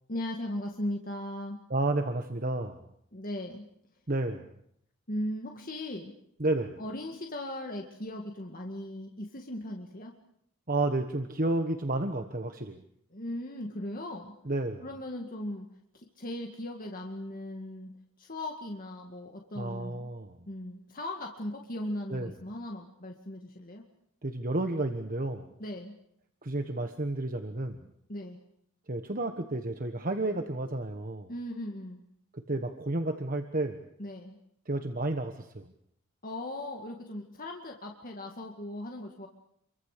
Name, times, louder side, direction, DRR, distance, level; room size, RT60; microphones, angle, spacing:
voice 1, 0.1-1.6 3.1-3.7 5.1-6.1 6.8-10.1 13.1-14.3 14.8-15.7 15.9-17.9 18.2-20.1 20.5-23.8 25.6-25.9 28.1-28.4 31.3-32.0 34.0-34.4 36.2-39.3, left 1 dB, 40° left, 2 dB, 2.1 m, -38 dB
voice 2, 1.7-2.8 4.1-4.5 6.4-6.8 10.7-12.8 14.5-14.8 19.5-20.4 22.1-22.3 24.2-25.5 26.4-27.8 28.9-31.3 32.3-33.8 34.7-35.6, right 2 dB, 40° right, 6 dB, 1.4 m, -31 dB
27.5 x 23.5 x 6.7 m, 0.72 s
head